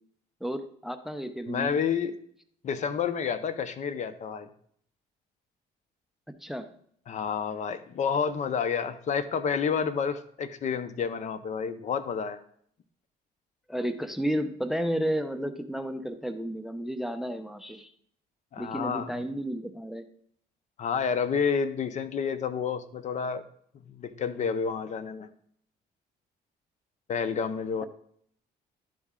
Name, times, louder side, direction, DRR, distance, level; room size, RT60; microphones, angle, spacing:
voice 1, 0.4-1.8 6.4-6.7 13.7-17.9 18.6-20.1, equal, ahead, 9 dB, 0.6 m, -32 dB
voice 2, 1.5-2.1 2.6-4.5 7.1-12.4 18.5-19.1 20.8-23.4 23.9-25.3 27.1-27.9, left 6 dB, 45° left, 12 dB, 0.6 m, -29 dB
12.0 x 4.1 x 3.7 m, 0.63 s
cardioid pair, 110°, 17 cm